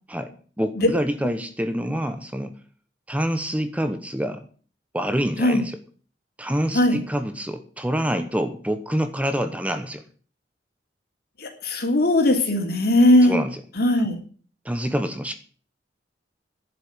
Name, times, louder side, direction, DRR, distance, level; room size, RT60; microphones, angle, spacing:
voice 1, 0.1-2.5 3.1-4.4 4.9-5.7 6.4-10.0 13.2-13.5 14.6-15.3, equal, 10° right, 9 dB, 0.9 m, -26 dB
voice 2, 11.4-13.4 13.7-14.2, left 1 dB, 60° left, 3 dB, 3.2 m, -19 dB
11.0 x 7.8 x 9.4 m, 0.43 s
head